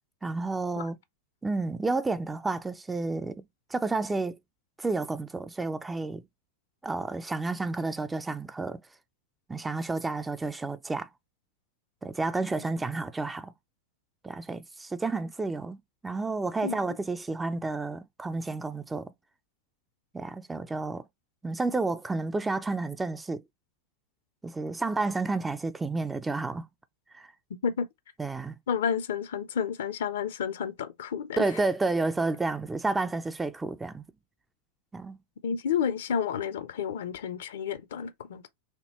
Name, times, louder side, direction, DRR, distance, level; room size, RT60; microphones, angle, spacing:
voice 1, 0.2-1.0 1.4-3.4 3.7-4.4 4.8-6.2 6.8-8.8 9.5-11.1 12.0-13.5 14.2-19.1 20.1-21.1 21.4-23.4 24.4-26.7 27.1-27.3 28.2-28.5 31.4-34.0 34.9-35.2, right 3 dB, 10° right, 0.3 m, -30 dB
voice 2, 27.5-27.9 28.7-31.4 35.4-38.5, left 7 dB, 60° left, 0.5 m, -30 dB
4.4 x 2.8 x 2.9 m
figure-of-eight pair, 90°, 0 cm